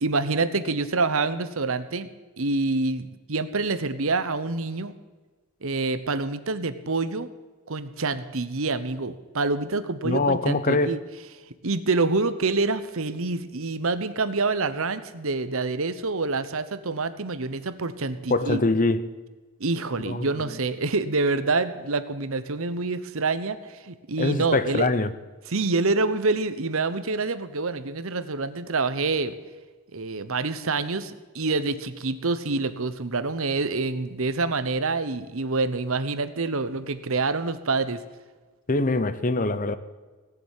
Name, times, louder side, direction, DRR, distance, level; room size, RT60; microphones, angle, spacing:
voice 1, 0.0-2.1 2.4-4.9 5.6-7.3 7.7-11.0 11.6-18.6 19.6-24.9 25.5-29.4 29.9-38.0, right 3 dB, 65° right, 1.0 m, -27 dB
voice 2, 10.0-11.0 18.3-19.1 20.0-20.3 24.2-25.1 38.7-39.8, left 2 dB, 35° left, 0.8 m, -23 dB
18.0 x 7.1 x 9.8 m
head